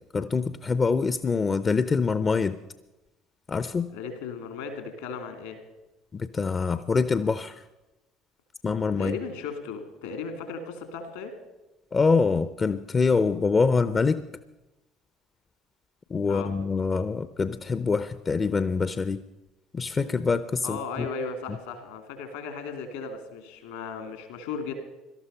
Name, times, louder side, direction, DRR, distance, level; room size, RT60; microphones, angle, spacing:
voice 1, 0.0-2.6 3.5-3.9 6.1-7.6 8.6-9.2 11.9-14.2 16.1-19.2 19.7-21.1, left 4 dB, 30° left, 13 dB, 0.6 m, -25 dB
voice 2, 3.9-5.6 9.0-11.4 16.3-16.6 20.6-24.7, left 5 dB, 75° left, 8 dB, 2.5 m, -36 dB
18.0 x 12.5 x 5.5 m, 0.98 s
figure-of-eight pair, 60°, 0 cm